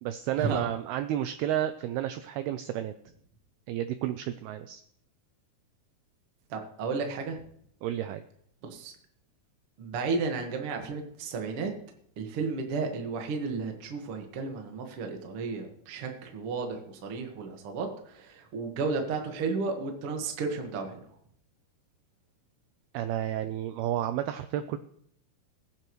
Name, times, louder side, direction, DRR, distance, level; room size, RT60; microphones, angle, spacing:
voice 1, 0.0-2.9 3.7-4.8 7.8-8.2 22.9-24.8, right 12 dB, 90° right, 10 dB, 2.2 m, -31 dB
voice 2, 6.5-7.4 8.6-8.9 9.8-11.7 12.2-21.0, right 4 dB, 70° right, 4 dB, 1.3 m, -33 dB
20.0 x 8.9 x 3.1 m, 0.69 s
omnidirectional pair, 5.2 m